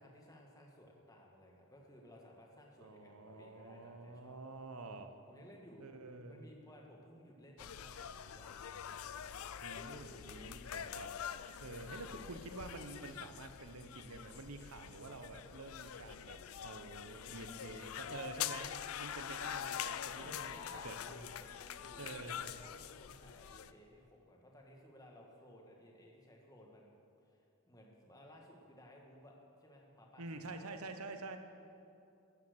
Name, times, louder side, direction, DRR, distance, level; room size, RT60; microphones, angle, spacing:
voice 1, 0.0-4.4 5.3-8.7 9.5-10.5 11.5-12.2 17.1-17.7 20.2-21.1 21.4-26.9 27.2-30.8, left 1 dB, 15° left, -1 dB, 1.6 m, -59 dB
voice 2, 2.8-5.1 5.8-6.5 9.6-18.7 19.0-21.4 22.0-22.6 30.2-31.4, right 3 dB, 80° right, 7 dB, 1.0 m, -48 dB
sound 1, 7.6-23.7, left 9 dB, 70° left, 0.4 m, -45 dB
13.0 x 7.4 x 7.9 m, 2.6 s
head